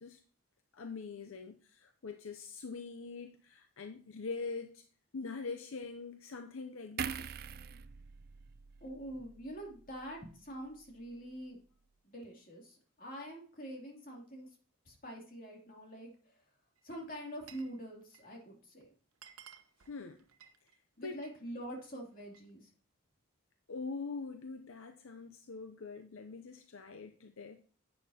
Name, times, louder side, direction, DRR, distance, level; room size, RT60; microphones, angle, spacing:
voice 1, 0.7-4.9 5.1-7.3 19.9-20.2 21.0-21.2 23.7-27.6, left 4 dB, 70° left, 0.6 m, -43 dB
sound 1, 7.0-10.4 10.7-10.9, right 7 dB, 45° right, 0.4 m, -44 dB
voice 2, 8.8-11.6 12.0-14.5 14.9-16.1 16.8-18.9 21.0-22.7, equal, 40° left, 2.8 m, -45 dB
Glass, 16.8-17.8 18.0-18.4 18.8-18.9 19.1-21.4 21.8-22.5, right 8 dB, 85° right, 1.0 m, -58 dB
10.5 x 8.7 x 2.8 m
head